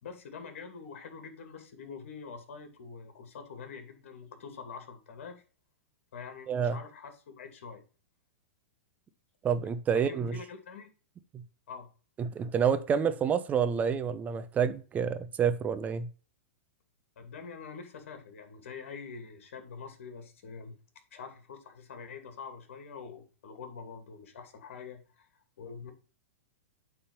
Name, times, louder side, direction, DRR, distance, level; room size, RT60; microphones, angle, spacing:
voice 1, 0.0-5.4 6.1-7.8 9.9-10.9 11.7-11.9 17.2-20.8 21.1-25.3 25.6-25.9, left 5 dB, 70° left, 2.3 m, -45 dB
voice 2, 6.5-6.8 9.4-10.4 11.3-11.4 12.2-16.1, right 7 dB, 20° right, 0.8 m, -28 dB
8.6 x 3.7 x 5.4 m
hypercardioid pair, 125°, 7 cm